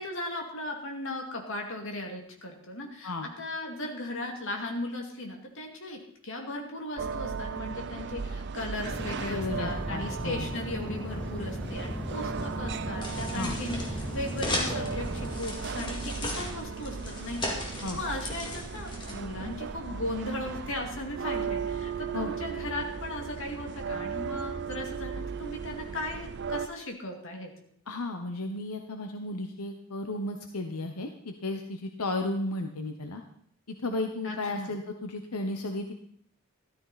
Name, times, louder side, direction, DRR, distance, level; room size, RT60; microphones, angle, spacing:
voice 1, 0.0-3.1 3.4-27.5 34.2-34.7, left 1 dB, 60° left, 2 dB, 2.4 m, -37 dB
sound 1, 7.0-26.7, right 5 dB, 50° right, 0.5 m, -36 dB
sound 2, 8.8-15.4, left 1 dB, 5° left, 0.4 m, -37 dB
voice 2, 9.3-10.5 13.3-13.6 17.8-18.0 22.1-22.3 27.9-33.2 33.7-35.9, left 2 dB, 90° left, 5 dB, 1.0 m, -34 dB
sound 3, 11.6-19.7, left 1 dB, 20° left, 2.2 m, -38 dB
13.5 x 13.0 x 4.2 m, 0.64 s
head